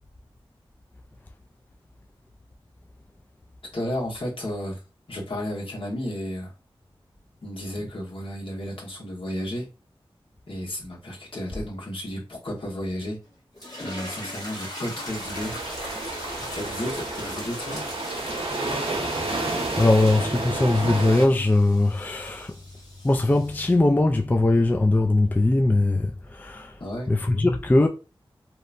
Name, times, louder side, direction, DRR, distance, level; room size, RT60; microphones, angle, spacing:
voice 1, 3.7-4.8 5.1-6.5 7.4-9.7 10.5-13.2 13.8-15.6 16.5-17.9 26.8-27.1, left 1 dB, 65° left, 1.1 m, -32 dB
sound 1, 13.6-23.7, equal, 45° left, 1.5 m, -40 dB
sound 2, 15.1-21.3, right 2 dB, 85° right, 0.8 m, -30 dB
voice 2, 19.0-22.5 23.0-26.8 27.1-27.9, left 2 dB, 20° left, 0.3 m, -21 dB
2.9 x 2.1 x 2.5 m
cardioid pair, 40°, 10 cm